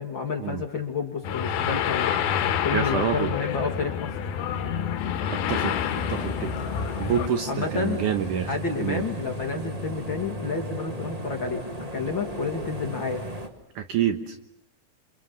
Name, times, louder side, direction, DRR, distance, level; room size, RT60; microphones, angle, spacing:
voice 1, 0.0-2.2 2.6-4.1 7.5-8.0 8.5-13.2, left 5 dB, 35° left, 2 dB, 2.6 m, -30 dB
sound 1, 1.2-7.3, left 8 dB, 75° left, 3.1 m, -28 dB
voice 2, 2.7-3.3 5.3-5.7 6.1-6.7 7.0-8.5 8.8-9.0 13.8-14.4, right 8 dB, 65° right, 6 dB, 2.3 m, -27 dB
sound 2, 5.5-13.5, right 1 dB, 35° right, 0.5 m, -36 dB
28.0 x 26.0 x 7.1 m, 0.81 s
omnidirectional pair, 4.5 m